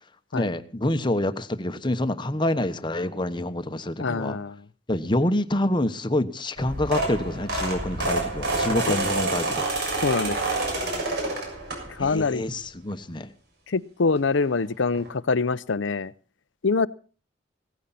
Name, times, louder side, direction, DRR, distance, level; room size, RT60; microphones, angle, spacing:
voice 1, 0.3-4.4 4.9-9.6 12.0-13.3, left 1 dB, 25° left, 10 dB, 1.1 m, -27 dB
voice 2, 4.0-4.5 8.9-9.0 10.0-10.4 12.0-12.4 13.7-16.1 16.6-16.9, left 4 dB, 80° left, 18 dB, 0.7 m, -24 dB
sound 1, 6.6-12.2 12.7-12.9 14.2-14.3 14.5-14.6 14.9-15.1, right 2 dB, 60° right, 6.8 m, -28 dB
17.5 x 14.5 x 4.2 m, 0.38 s
head